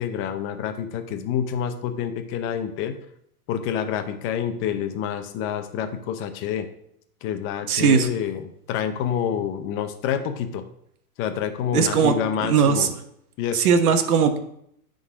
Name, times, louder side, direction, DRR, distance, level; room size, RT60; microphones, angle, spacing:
voice 1, 0.0-3.0 3.5-6.7 7.2-10.6 11.2-12.9 13.4-13.8, left 8 dB, 25° left, 7 dB, 0.8 m, -28 dB
voice 2, 7.7-8.1 11.7-12.1 12.4-12.9 13.5-14.4, right 6 dB, 70° right, 7 dB, 1.2 m, -19 dB
9.6 x 4.0 x 4.9 m, 0.71 s
hypercardioid pair, 130°, 46 cm